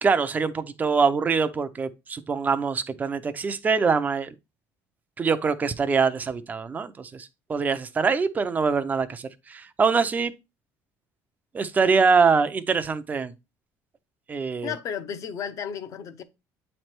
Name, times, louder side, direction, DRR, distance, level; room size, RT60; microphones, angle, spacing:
voice 1, 0.0-4.3 5.2-10.3 11.5-13.3 14.3-14.7, right 5 dB, 25° right, 0.6 m, -24 dB
voice 2, 14.6-16.2, left 8 dB, 50° left, 0.9 m, -33 dB
8.5 x 3.3 x 4.4 m
cardioid pair, 125°, 7 cm